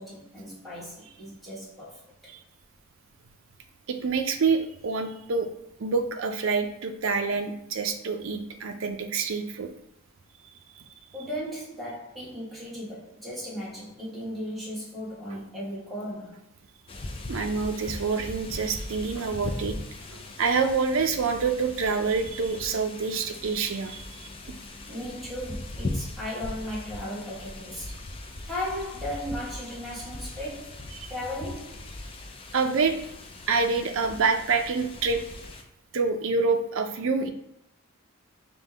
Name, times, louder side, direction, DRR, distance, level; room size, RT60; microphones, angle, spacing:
voice 1, 0.0-2.3 11.1-16.4 24.9-28.0 28.4-31.8, equal, ahead, 1.2 m, -36 dB
voice 2, 3.9-5.5 5.8-9.7 10.8-10.9 17.3-19.8 20.1-24.3 32.5-33.0 33.5-35.2 35.9-37.3, right 4 dB, 65° right, 0.5 m, -27 dB
sound 1, 16.9-35.6, left 2 dB, 25° left, 0.4 m, -39 dB
5.2 x 2.2 x 3.3 m
head